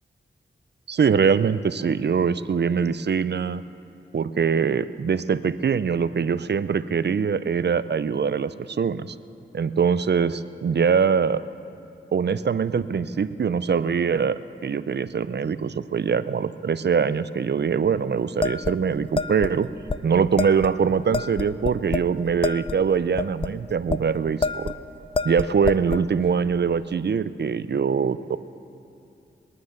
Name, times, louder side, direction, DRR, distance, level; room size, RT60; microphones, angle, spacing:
voice 1, 0.9-3.6 4.1-9.1 9.5-11.4 12.1-19.7 20.0-24.7 25.2-28.4, right 6 dB, 55° right, 14 dB, 0.5 m, -23 dB
sound 1, 18.4-19.5 19.9-20.0 20.4-20.7 21.1-22.1 22.4-24.0 24.4-24.8 25.2-26.1, left 4 dB, 25° left, 0.5 m, -27 dB
21.5 x 9.7 x 6.5 m, 2.7 s
cardioid pair, 55°, 21 cm